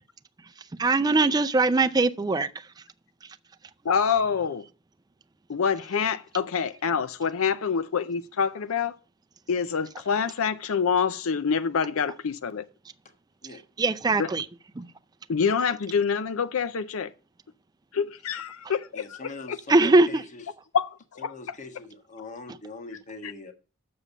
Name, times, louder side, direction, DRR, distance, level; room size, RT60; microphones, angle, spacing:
voice 1, 0.7-2.7 3.2-3.3 13.8-14.5 14.8-14.9 19.7-20.2, right 3 dB, 20° right, 0.4 m, -21 dB
voice 2, 3.8-4.6 5.5-8.9 9.5-12.6 14.2-14.3 15.3-17.1 17.9-19.6 20.7-21.3 23.2-23.3, left 6 dB, 75° left, 0.5 m, -26 dB
voice 3, 18.9-20.4 21.2-23.5, left 2 dB, 35° left, 1.4 m, -42 dB
7.1 x 6.8 x 7.2 m
head